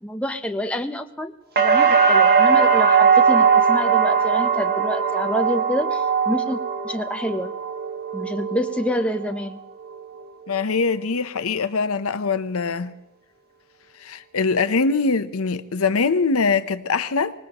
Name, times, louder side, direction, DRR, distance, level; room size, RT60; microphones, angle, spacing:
voice 1, 0.0-6.6 6.8-7.5 8.1-9.6, equal, 5° left, 0.7 m, -27 dB
sound 1, 1.6-9.5 9.8-10.5, right 6 dB, 45° right, 1.2 m, -19 dB
voice 2, 10.5-12.9 14.0-17.3, left 4 dB, 75° left, 0.8 m, -22 dB
25.0 x 19.5 x 3.0 m
head